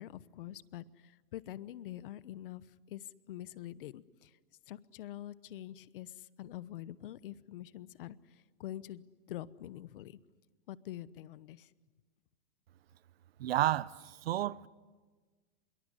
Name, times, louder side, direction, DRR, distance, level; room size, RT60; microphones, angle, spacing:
voice 1, 0.0-4.3 4.7-6.1 6.4-8.2 8.6-10.2 10.7-11.7, left 13 dB, 60° left, 1.0 m, -45 dB
voice 2, 13.4-13.9 14.3-14.7, right 13 dB, 85° right, 0.8 m, -30 dB
25.5 x 22.5 x 9.9 m
supercardioid pair, 165°, 30 cm